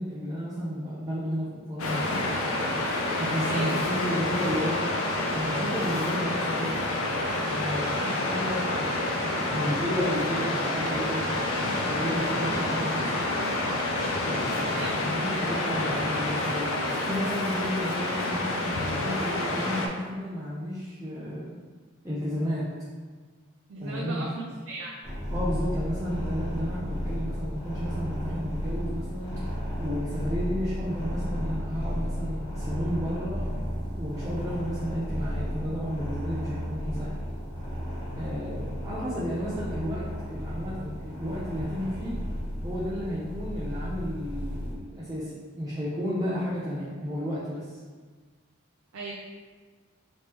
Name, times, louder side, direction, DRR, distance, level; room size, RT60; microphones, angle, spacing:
voice 1, 0.0-2.1 3.2-4.9 5.3-6.8 7.3-13.3 14.2-16.7 17.1-21.6 22.0-22.7 23.8-24.3 25.3-33.5 34.0-37.1 38.2-42.1 42.6-47.8, equal, 15° right, -10 dB, 0.5 m, -33 dB
Waves surf, 1.8-19.9, left 2 dB, 80° left, 0.5 m, -28 dB
voice 2, 3.4-3.8 14.7-15.0 23.7-24.9 48.9-49.1, right 2 dB, 80° right, -3 dB, 0.5 m, -36 dB
sound 1, 25.0-44.7, equal, 25° left, 1.1 m, -33 dB
3.3 x 3.1 x 2.9 m, 1.5 s
head